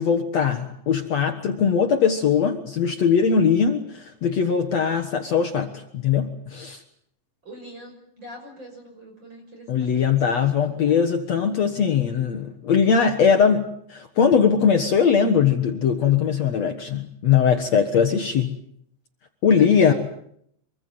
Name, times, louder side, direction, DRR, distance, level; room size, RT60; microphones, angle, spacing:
voice 1, 0.0-6.8 9.7-18.5 19.4-19.9, left 7 dB, 75° left, 5 dB, 1.5 m, -20 dB
voice 2, 7.4-10.2 10.4-11.0 19.6-19.9, equal, 25° right, 2 dB, 6.5 m, -43 dB
25.5 x 24.0 x 7.8 m, 0.71 s
omnidirectional pair, 5.3 m